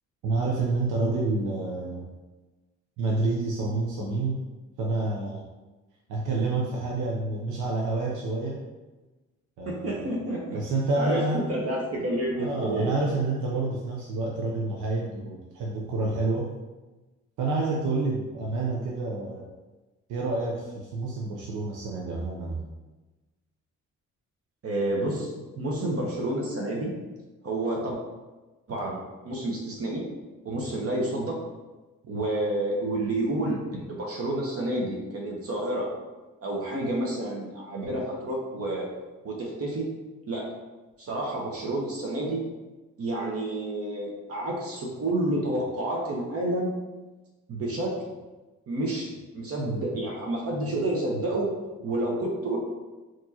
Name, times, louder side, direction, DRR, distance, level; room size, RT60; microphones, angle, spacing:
voice 1, 0.2-2.1 3.0-4.4 4.8-5.4 6.1-8.6 9.6-10.2 10.5-11.6 12.4-16.5 17.4-19.5 20.1-22.7, right 3 dB, 85° right, -2 dB, 0.6 m, -28 dB
voice 2, 9.7-10.6 11.0-12.9 24.6-26.9 27.4-28.0 28.7-29.0 29.2-30.0 30.4-31.4 32.1-35.9 36.4-38.9 39.2-39.9 40.3-40.5 41.0-42.4 43.0-46.7 47.5-48.0 48.7-49.1 49.3-51.5 51.8-52.6, right 1 dB, 50° right, -2 dB, 0.9 m, -29 dB
4.3 x 3.0 x 2.8 m, 1.2 s
cardioid pair, 90°, 30 cm